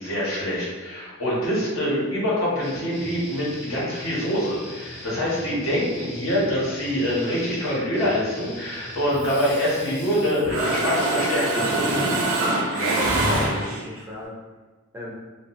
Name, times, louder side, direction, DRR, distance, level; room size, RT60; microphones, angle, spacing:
voice 1, 0.0-12.0, equal, 75° left, -7 dB, 1.1 m, -25 dB
sound 1, 2.6-10.3, left 1 dB, 50° left, 1.0 m, -40 dB
Mechanisms, 9.2-10.1 10.4-14.0, right 1 dB, 85° right, 0.6 m, -24 dB
voice 2, 12.4-14.4 14.9-15.1, left 1 dB, 10° right, -4 dB, 0.4 m, -37 dB
2.7 x 2.4 x 2.5 m, 1.3 s
head